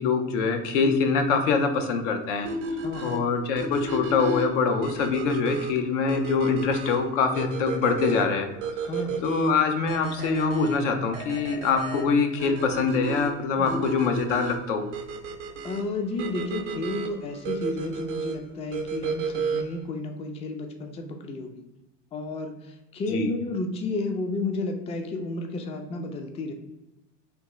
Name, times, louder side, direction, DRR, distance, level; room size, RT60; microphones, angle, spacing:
voice 1, 0.0-2.5 3.0-8.5 9.2-14.9 23.1-23.3, left 4 dB, 75° left, 5 dB, 0.6 m, -24 dB
sound 1, 2.4-19.8, right 4 dB, 70° right, 0.6 m, -34 dB
voice 2, 2.8-3.1 8.8-9.3 13.6-13.9 15.6-21.6 22.1-26.5, left 2 dB, 20° left, 4 dB, 0.4 m, -32 dB
3.4 x 2.3 x 3.0 m, 1.0 s
hypercardioid pair, 85°, 37 cm